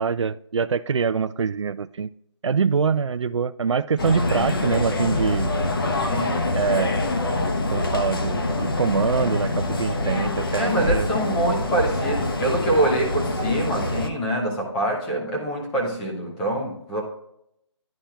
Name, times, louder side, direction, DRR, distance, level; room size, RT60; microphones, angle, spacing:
voice 1, 0.0-2.1 2.4-5.5 6.6-7.1 7.7-11.1, right 6 dB, 80° right, 12 dB, 0.4 m, -24 dB
sound 1, 4.0-14.1, left 2 dB, 50° left, 0.8 m, -25 dB
voice 2, 10.5-17.0, right 1 dB, 5° left, -2 dB, 0.5 m, -25 dB
11.5 x 4.3 x 2.2 m, 0.76 s
figure-of-eight pair, 170°, 15 cm